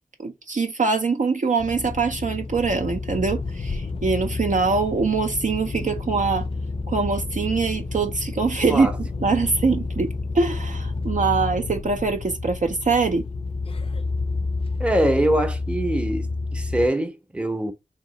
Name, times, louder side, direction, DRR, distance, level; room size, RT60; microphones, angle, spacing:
voice 1, 0.2-6.5 6.9-8.9 9.2-13.3, right 4 dB, 60° right, 0.5 m, -23 dB
sound 1, 1.6-16.9, left 3 dB, 40° left, 0.4 m, -30 dB
voice 2, 14.8-17.7, right 1 dB, 5° right, 0.6 m, -23 dB
2.9 x 2.8 x 3.8 m
wide cardioid pair, 60°, 15 cm